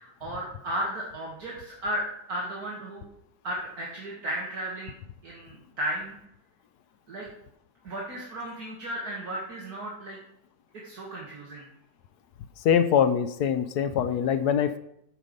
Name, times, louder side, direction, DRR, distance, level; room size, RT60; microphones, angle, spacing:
voice 1, 0.0-3.0 3.4-4.9 5.2-6.2 7.1-7.3 7.8-10.2 10.8-11.6, right 1 dB, 55° right, -4 dB, 1.9 m, -34 dB
voice 2, 12.6-14.8, left 8 dB, 75° left, 11 dB, 1.0 m, -23 dB
8.9 x 5.4 x 6.6 m, 0.76 s
omnidirectional pair, 2.0 m